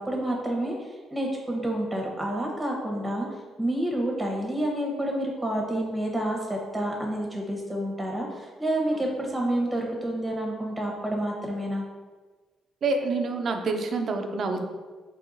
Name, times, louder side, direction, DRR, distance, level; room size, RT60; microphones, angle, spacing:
voice 1, 0.0-3.3 3.6-11.8, right 1 dB, 15° right, -1 dB, 1.0 m, -29 dB
voice 2, 12.8-14.7, right 3 dB, 55° right, 5 dB, 0.5 m, -27 dB
4.5 x 3.2 x 2.6 m, 1.4 s
cardioid pair, 90°, 0 cm